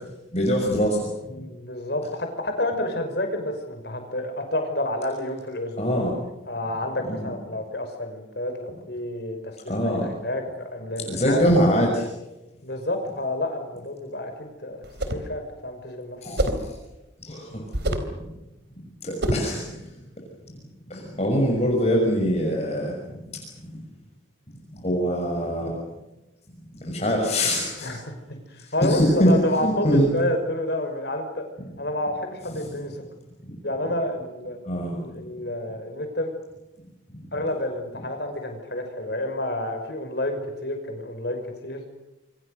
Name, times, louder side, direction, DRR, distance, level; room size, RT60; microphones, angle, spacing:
voice 1, 0.3-1.1 1.3-1.4 5.8-6.1 7.0-7.3 9.7-10.1 11.0-12.0 16.2-16.8 17.2-17.5 18.2-18.3 19.0-19.8 20.9-23.7 24.7-25.7 26.8-27.9 28.6-29.3 29.6-30.1 34.7-35.0, equal, 35° left, 0 dB, 6.0 m, -23 dB
voice 2, 1.3-6.0 6.5-10.4 10.7-11.4 11.7-11.9 12.6-16.2 27.8-31.4 31.8-32.9 33.6-34.6 34.9-36.3 37.3-41.8, left 1 dB, 55° left, 6 dB, 5.8 m, -29 dB
sound 1, 14.8-15.3 16.4-16.7 17.7-18.2 19.2-19.5, right 1 dB, 60° right, 3.8 m, -25 dB
28.5 x 24.5 x 6.7 m, 0.98 s
head